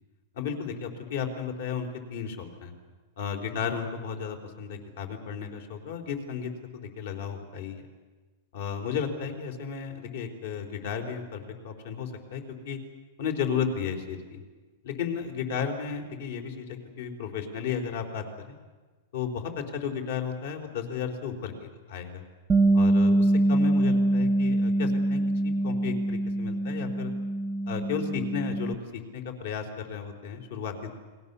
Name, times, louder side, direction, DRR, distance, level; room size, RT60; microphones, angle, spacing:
voice 1, 0.3-2.7 3.2-7.8 8.5-12.8 13.2-14.4 14.8-18.6 19.1-22.2 22.7-27.1 27.7-30.9, left 6 dB, 70° left, 5 dB, 4.1 m, -34 dB
Bass guitar, 22.5-28.7, right 1 dB, 15° right, 0.7 m, -24 dB
30.0 x 22.0 x 7.0 m, 1.4 s
supercardioid pair, 160°, 0 cm